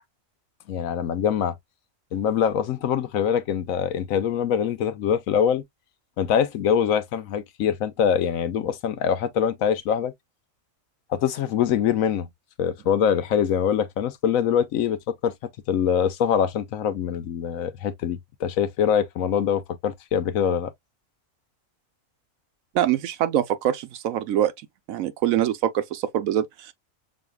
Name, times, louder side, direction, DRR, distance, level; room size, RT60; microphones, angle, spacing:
voice 1, 0.7-1.6 2.1-5.6 6.2-10.1 11.1-12.3 12.6-15.3 15.7-20.7, left 8 dB, 90° left, 1.1 m, -24 dB
voice 2, 22.7-24.5 24.9-26.7, right 11 dB, 90° right, 1.1 m, -24 dB
6.3 x 2.6 x 2.2 m
omnidirectional pair, 1.4 m